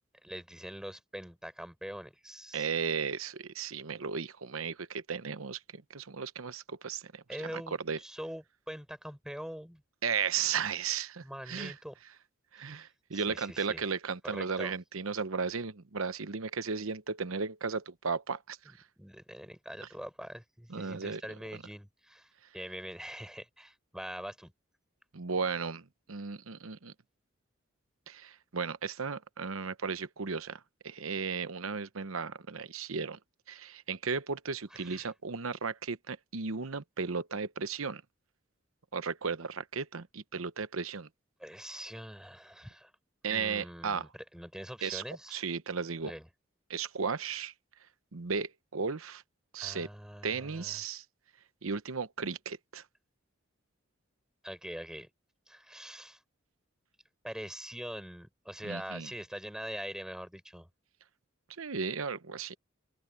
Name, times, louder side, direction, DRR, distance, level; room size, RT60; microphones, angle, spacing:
voice 1, 0.2-2.7 7.3-9.8 11.2-12.0 13.1-13.8 14.2-14.7 19.0-24.5 34.7-35.1 41.4-42.9 43.3-45.4 46.1-46.3 49.6-50.8 54.4-55.1 55.5-56.2 57.2-60.7, equal, 5° right, 4.6 m, -43 dB
voice 2, 2.5-7.2 7.5-8.0 10.0-11.7 12.5-18.6 20.7-21.2 25.1-26.9 28.1-33.2 33.5-38.0 38.9-41.1 43.2-44.1 44.8-45.0 45.3-46.1 46.7-47.5 48.1-49.2 49.5-49.9 50.2-51.0 51.6-52.8 58.6-59.1 61.6-62.6, right 5 dB, 90° right, 0.9 m, -35 dB
open air
head